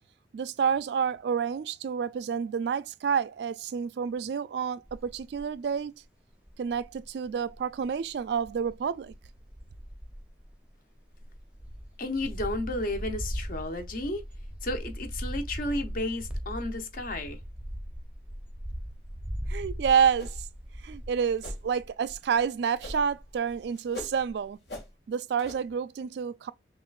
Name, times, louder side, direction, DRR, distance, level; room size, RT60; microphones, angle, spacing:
voice 1, 0.3-6.0 6.6-9.1 19.5-20.5 20.8-24.6 25.1-26.5, right 7 dB, 70° right, 0.3 m, -29 dB
sound 1, 4.9-5.5 6.0-6.1 6.4-22.4 22.7-23.6 24.0-24.3, equal, 5° right, 0.6 m, -39 dB
voice 2, 12.0-14.2 14.6-17.4, left 1 dB, 50° left, 0.8 m, -32 dB
sound 2, 20.2-20.6 20.9-21.0 21.4-21.7 22.8-23.2 23.5-24.2 24.7-24.9 25.4-25.6, left 1 dB, 65° left, 1.4 m, -40 dB
5.7 x 2.4 x 2.4 m
head